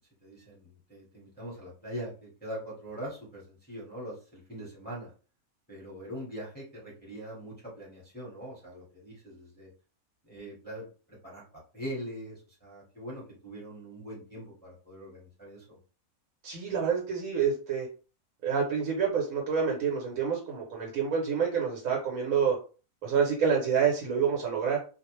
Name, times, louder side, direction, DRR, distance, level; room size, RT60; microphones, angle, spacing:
voice 1, 0.2-5.1 5.7-9.7 10.2-15.8, equal, 10° left, -5 dB, 0.9 m, -42 dB
voice 2, 16.4-17.9 18.4-22.6 23.0-24.8, right 6 dB, 80° right, -1 dB, 1.1 m, -27 dB
2.4 x 2.0 x 3.0 m, 0.36 s
omnidirectional pair, 1.4 m